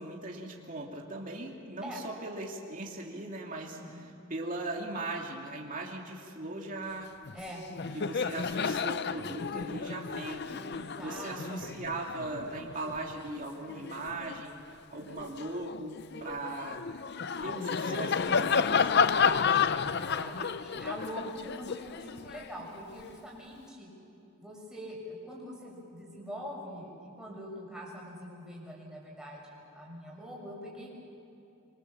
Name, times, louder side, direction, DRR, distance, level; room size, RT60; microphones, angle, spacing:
voice 1, 0.0-7.1 7.9-10.6 11.0-14.6 14.9-16.8 17.4-18.9, right 2 dB, 40° right, -1 dB, 2.7 m, -39 dB
voice 2, 3.6-4.0 7.3-7.6 10.5-11.4 19.9-23.9 24.4-26.9 27.2-30.9, equal, 5° right, -4 dB, 6.9 m, -43 dB
Laughter, 7.3-7.4 7.7-14.4 14.9-23.1, left 6 dB, 50° left, 0.6 m, -31 dB
26.0 x 25.0 x 7.4 m, 2.8 s
head